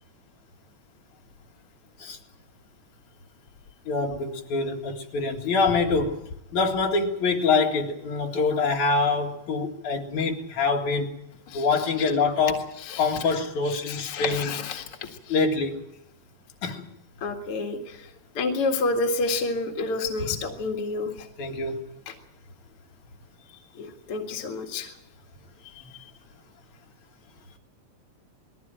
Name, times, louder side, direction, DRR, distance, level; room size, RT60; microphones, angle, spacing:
voice 1, 3.9-6.2 6.5-11.1 11.5-12.7 13.0-14.5 15.3-15.8 16.6-16.9 21.4-21.8, left 4 dB, 75° left, 3.4 m, -25 dB
voice 2, 13.7-15.4 17.2-18.1 18.3-21.3 22.1-22.2 23.7-24.9 25.8-26.0, left 3 dB, 50° left, 2.7 m, -29 dB
21.0 x 16.0 x 9.0 m
omnidirectional pair, 3.4 m